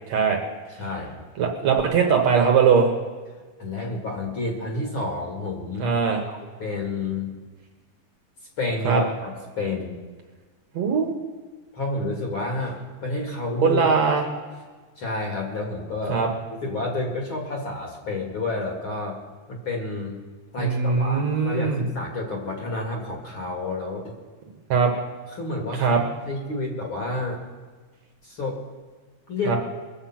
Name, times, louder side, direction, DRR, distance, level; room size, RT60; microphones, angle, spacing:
voice 1, 0.1-0.4 1.4-2.9 5.8-6.2 8.9-9.0 10.8-11.2 13.6-14.2 16.1-16.3 20.6-21.8 24.7-24.9 25.8-26.0 29.5-29.6, right 6 dB, 60° right, 2 dB, 2.1 m, -20 dB
voice 2, 0.8-1.2 3.6-5.9 6.3-7.3 8.6-9.9 11.7-14.0 15.0-16.2 16.5-19.2 19.5-20.2 20.5-24.2 25.3-26.0 26.2-27.4 28.2-28.6 29.3-29.6, left 2 dB, 45° left, 0 dB, 2.3 m, -30 dB
22.0 x 7.8 x 5.8 m, 1.4 s
omnidirectional pair, 3.9 m